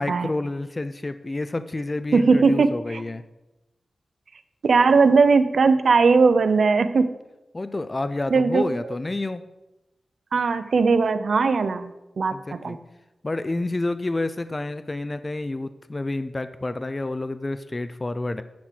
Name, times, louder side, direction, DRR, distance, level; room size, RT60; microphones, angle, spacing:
voice 1, 0.0-3.2 7.5-9.4 12.3-12.8 13.2-18.4, left 2 dB, 30° left, 11 dB, 0.6 m, -29 dB
voice 2, 2.1-3.0 4.6-7.1 8.3-8.6 10.3-12.8, right 4 dB, 75° right, 11 dB, 0.6 m, -19 dB
10.5 x 4.4 x 7.7 m, 0.98 s
wide cardioid pair, 70°, 0 cm